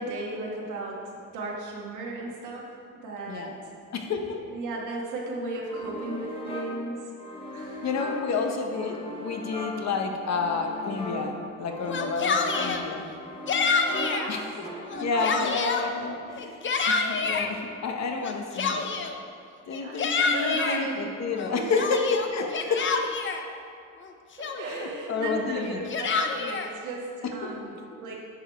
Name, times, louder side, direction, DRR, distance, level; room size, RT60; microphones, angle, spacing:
voice 1, 0.0-2.7 3.0-3.7 4.5-7.1 7.5-7.8 8.3-8.4 10.0-10.1 14.0-14.4 14.9-15.5 19.8-21.1 21.5-21.6 24.4-28.3, right 2 dB, 80° right, -2 dB, 1.6 m, -35 dB
voice 2, 3.9-4.4 7.8-13.1 14.3-14.5 15.0-18.9 19.7-22.8 24.7-25.9 27.4-27.5, left 4 dB, 60° left, 3 dB, 1.1 m, -30 dB
sound 1, 5.7-15.2, left 1 dB, 20° left, 1.2 m, -38 dB
Yell, 11.8-12.8 13.5-14.3 14.8-15.9 16.4-17.5 18.2-19.2 19.7-20.8 21.3-23.4 24.0-24.1 24.4-24.9 25.6-26.7, left 4 dB, 40° left, 0.7 m, -27 dB
9.9 x 5.1 x 4.4 m, 2.4 s
cardioid pair, 90°, 30 cm